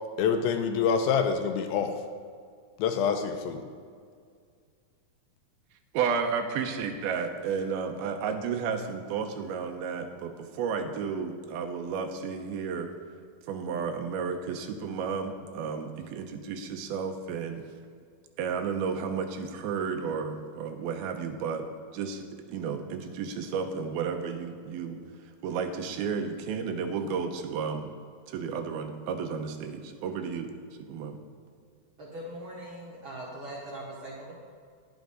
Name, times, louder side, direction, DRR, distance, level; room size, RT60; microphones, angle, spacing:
voice 1, 0.2-1.9 2.8-3.6, left 6 dB, 85° left, 7 dB, 2.4 m, -26 dB
voice 2, 5.9-12.9 13.5-17.6 18.4-21.7 21.9-22.2 22.5-25.0 25.4-27.9 28.3-30.5 30.9-31.2, right 6 dB, 90° right, 6 dB, 2.6 m, -32 dB
voice 3, 32.0-34.3, right 1 dB, 55° right, -4 dB, 1.4 m, -41 dB
10.5 x 8.9 x 3.8 m, 2.1 s
omnidirectional pair, 4.3 m